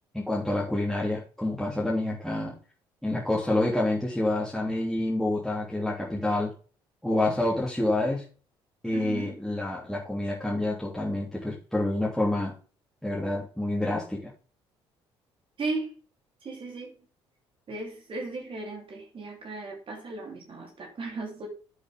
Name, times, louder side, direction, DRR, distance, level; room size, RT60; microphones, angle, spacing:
voice 1, 0.1-2.5 3.0-6.5 7.0-8.2 8.8-12.5 13.0-14.3, left 1 dB, ahead, -6 dB, 3.5 m, -28 dB
voice 2, 8.9-9.4 15.6-16.0 16.4-16.9 17.7-21.5, right 3 dB, 40° right, 0 dB, 3.9 m, -36 dB
10.5 x 8.1 x 3.8 m, 0.37 s
figure-of-eight pair, 50°, 14 cm